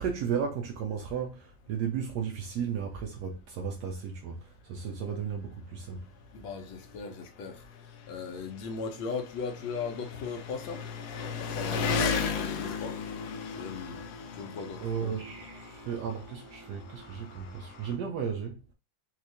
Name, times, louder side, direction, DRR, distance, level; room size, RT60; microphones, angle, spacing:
voice 1, 0.0-6.0 14.8-18.6, right 7 dB, 75° right, 1.0 m, -34 dB
Engine, 3.4-3.5 3.9-4.0 4.9-5.0 5.2-18.0, left 5 dB, 70° left, 1.0 m, -37 dB
voice 2, 6.3-10.8 11.2-13.1 13.6-14.0 14.3-14.8, left 5 dB, 85° left, 1.6 m, -38 dB
4.5 x 2.4 x 2.7 m
omnidirectional pair, 2.1 m